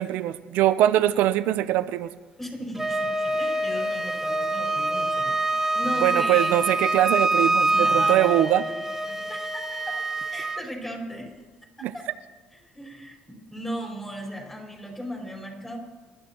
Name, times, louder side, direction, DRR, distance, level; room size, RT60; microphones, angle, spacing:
voice 1, 0.0-2.1 6.0-8.7 11.8-11.9, right 13 dB, 80° right, 11 dB, 0.5 m, -22 dB
voice 2, 2.4-6.6 7.6-10.0 10.3-11.3 11.8-12.0 12.6-15.8, equal, 10° left, -2 dB, 5.0 m, -37 dB
Wind instrument woodwind instrument, 2.8-10.6, right 2 dB, 10° right, 0.8 m, -25 dB
26.5 x 12.5 x 3.0 m, 1.3 s
cardioid pair, 115°, 3 cm